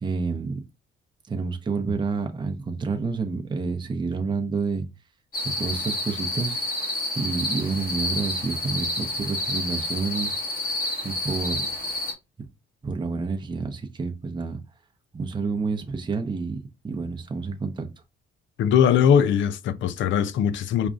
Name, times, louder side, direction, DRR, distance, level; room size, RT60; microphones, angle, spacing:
voice 1, 0.0-0.5 1.3-4.9 5.5-6.6 7.1-10.4 11.0-11.7 12.4-12.5 12.8-14.6 15.1-16.6 16.8-17.9, right 4 dB, 25° right, 0.7 m, -29 dB
sound 1, 5.3-12.1, left 1 dB, 45° left, 1.4 m, -29 dB
voice 2, 18.6-20.9, left 8 dB, 75° left, 0.5 m, -20 dB
5.1 x 2.3 x 2.4 m
cardioid pair, 90°, 20 cm